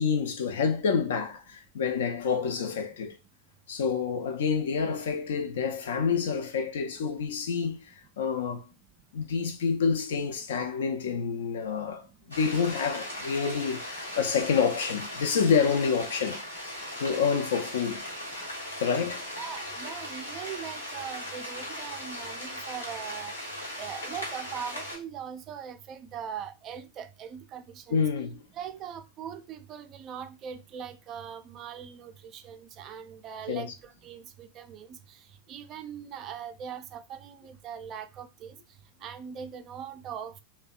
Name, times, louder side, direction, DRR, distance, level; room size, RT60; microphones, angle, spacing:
voice 1, 0.0-3.2 3.7-8.6 9.1-16.4 17.0-18.0 18.8-19.3 27.9-28.4 33.5-33.7, left 6 dB, 65° left, 0.4 m, -28 dB
sound 1, 12.3-25.0, left 1 dB, 85° left, 0.9 m, -38 dB
voice 2, 19.4-23.4 23.8-28.0 28.5-35.0 35.5-38.6 39.0-40.4, right 8 dB, 35° right, 0.3 m, -40 dB
2.6 x 2.1 x 2.3 m
figure-of-eight pair, 90°, 0 cm